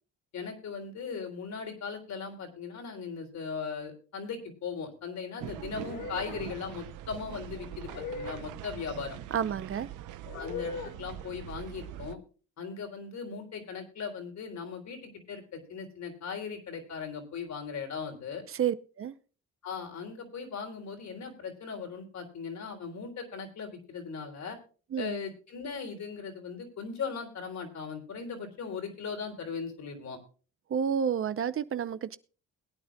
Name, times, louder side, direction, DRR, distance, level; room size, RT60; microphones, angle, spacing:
voice 1, 0.3-9.2 10.3-12.2 12.6-18.4 19.6-24.6 25.0-30.2, left 5 dB, 65° left, 3.6 m, -38 dB
sound 1, 5.4-12.2, right 12 dB, 85° right, 0.8 m, -43 dB
sound 2, 5.8-6.4 7.9-8.5 10.2-10.9, left 4 dB, 90° left, 2.4 m, -39 dB
voice 2, 9.3-9.9 18.5-19.1 24.9-25.2 30.7-32.2, right 8 dB, 45° right, 0.7 m, -30 dB
21.5 x 9.4 x 2.3 m
cardioid pair, 90°, 30 cm